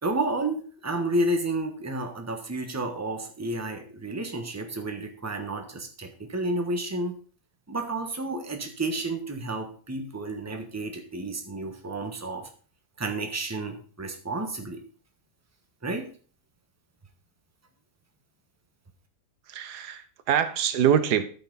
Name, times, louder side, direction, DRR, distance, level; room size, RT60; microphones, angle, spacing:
voice 1, 0.0-7.1 7.7-12.5 13.0-14.8 15.8-16.1, right 2 dB, 10° right, 4 dB, 1.1 m, -31 dB
voice 2, 19.5-21.2, right 9 dB, 90° right, 12 dB, 1.4 m, -24 dB
13.0 x 5.8 x 4.0 m, 0.42 s
omnidirectional pair, 1.7 m